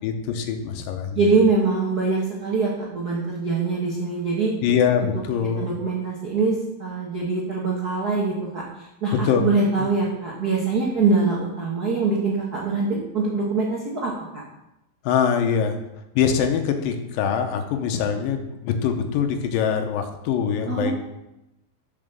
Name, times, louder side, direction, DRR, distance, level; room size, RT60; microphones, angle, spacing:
voice 1, 0.0-1.2 4.6-5.8 9.2-9.5 9.8-9.9 15.0-15.8 16.2-20.9, left 7 dB, 80° left, 5 dB, 2.6 m, -23 dB
voice 2, 1.1-4.5 5.6-8.6 9.0-14.1 20.7-20.9, right 4 dB, 70° right, -3 dB, 0.9 m, -23 dB
7.3 x 6.4 x 6.8 m, 0.90 s
omnidirectional pair, 4.1 m